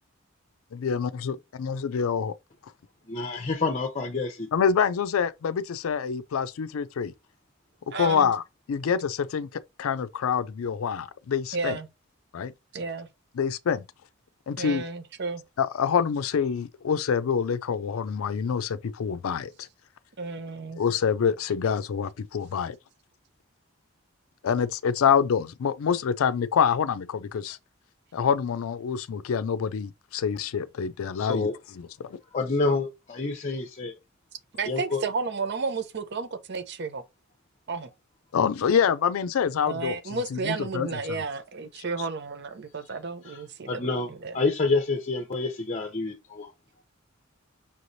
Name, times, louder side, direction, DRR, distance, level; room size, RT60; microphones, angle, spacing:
voice 1, 0.7-2.3 4.5-7.1 7.9-8.4 8.7-11.8 12.3-12.5 13.3-13.8 14.5-14.8 15.6-19.7 20.8-22.8 24.4-27.6 28.1-31.5 31.7-32.2 38.3-41.2, left 7 dB, 85° left, 0.4 m, -26 dB
voice 2, 3.1-4.5 31.2-31.6 32.3-34.0 34.6-35.0 43.2-43.4 43.7-46.5, left 3 dB, 35° left, 0.6 m, -28 dB
voice 3, 7.9-8.3 11.5-11.9 12.7-13.1 14.6-15.4 20.2-20.8 34.5-37.0 37.7-37.9 39.7-44.4, right 4 dB, 55° right, 0.6 m, -32 dB
5.7 x 3.1 x 2.6 m
head